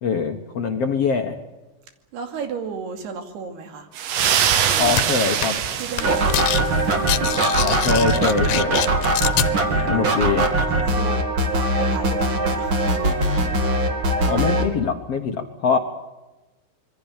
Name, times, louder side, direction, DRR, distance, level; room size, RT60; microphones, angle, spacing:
voice 1, 0.0-1.4 4.8-5.6 7.6-8.8 9.9-10.5 14.2-15.8, left 5 dB, 55° left, 4 dB, 1.9 m, -23 dB
voice 2, 2.1-3.9 4.3-5.2 5.8-6.7 9.7-11.2 11.5-12.8, right 5 dB, 85° right, 6 dB, 4.5 m, -34 dB
sound 1, 4.0-7.0, right 9 dB, 65° right, 2.9 m, -23 dB
sound 2, 5.0-5.1 5.4-5.7 5.9-6.6 6.9-9.5, left 14 dB, 80° left, 2.9 m, -25 dB
sound 3, 6.0-14.7, right 1 dB, 35° right, 2.9 m, -21 dB
26.0 x 22.5 x 7.4 m, 1.1 s
omnidirectional pair, 4.5 m